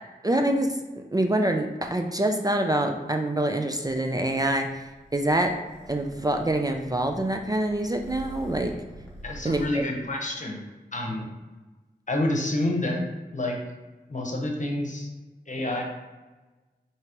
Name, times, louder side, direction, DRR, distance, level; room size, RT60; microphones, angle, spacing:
voice 1, 0.2-0.8 1.1-5.5 5.9-8.7 9.4-9.8, right 1 dB, 20° right, 4 dB, 0.4 m, -25 dB
Purr, 3.8-9.7, right 1 dB, 5° left, 1.4 m, -46 dB
voice 2, 9.2-10.6 10.9-11.3 12.1-13.0 13.3-13.6 14.1-15.1 15.5-15.8, left 1 dB, 45° left, 1 dB, 0.9 m, -28 dB
4.7 x 2.9 x 3.0 m, 1.2 s
cardioid pair, 40°, 17 cm